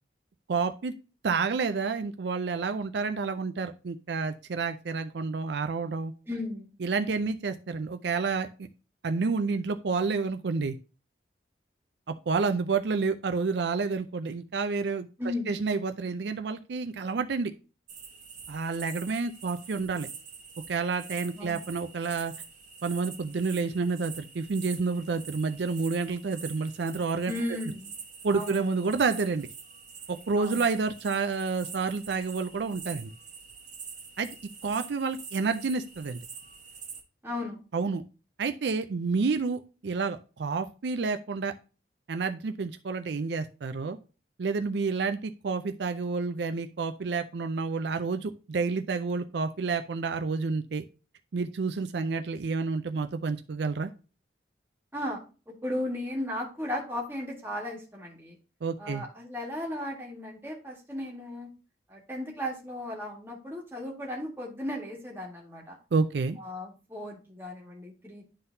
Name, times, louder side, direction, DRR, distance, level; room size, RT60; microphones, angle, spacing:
voice 1, 0.5-0.9 1.2-6.1 6.8-8.7 9.0-10.8 12.1-15.1 15.5-17.5 18.5-20.1 20.7-22.3 22.8-27.3 28.2-29.5 30.1-33.1 34.2-34.3 34.6-36.2 37.7-38.0 38.4-41.5 42.1-44.0 44.4-50.8 51.3-53.9 58.6-59.0 65.9-66.4, right 4 dB, 70° right, 8 dB, 0.5 m, -29 dB
voice 2, 6.3-6.7 15.2-15.5 21.3-21.7 27.3-27.9 28.3-28.7 30.3-30.6 37.2-37.6 54.9-55.2 55.5-58.4 58.8-61.5 61.9-65.8 66.4-68.2, left 1 dB, 10° right, -2 dB, 1.8 m, -35 dB
sound 1, 17.9-37.0, right 6 dB, 45° right, 1.4 m, -45 dB
11.0 x 3.8 x 2.7 m, 0.34 s
head